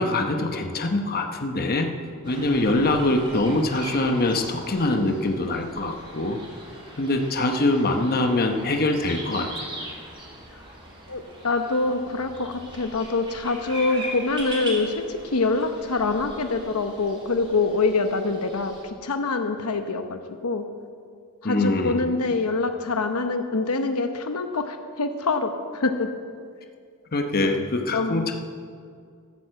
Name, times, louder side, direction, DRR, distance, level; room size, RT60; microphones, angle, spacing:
voice 1, 0.0-1.9 2.2-6.4 7.0-9.7 21.4-22.1 27.1-28.3, left 2 dB, 45° left, 4 dB, 0.9 m, -24 dB
sound 1, 2.2-18.8, right 1 dB, 25° right, 3.0 m, -40 dB
voice 2, 11.1-20.7 21.4-26.1 27.4-28.3, left 3 dB, 75° left, 7 dB, 0.9 m, -25 dB
13.0 x 9.2 x 7.6 m, 2.2 s
head